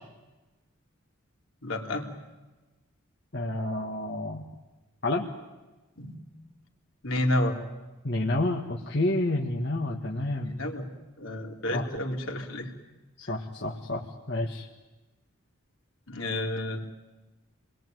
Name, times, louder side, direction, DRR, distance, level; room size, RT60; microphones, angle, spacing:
voice 1, 1.6-2.1 6.0-6.2 7.0-7.6 10.6-10.9 11.2-12.7 13.2-13.3 16.1-16.8, left 1 dB, 70° left, 1 dB, 3.4 m, -30 dB
voice 2, 3.3-4.4 5.0-5.3 8.0-10.6 11.7-11.9 13.2-14.7, left 2 dB, 50° left, -1 dB, 1.8 m, -29 dB
29.0 x 22.0 x 9.4 m, 1.2 s
head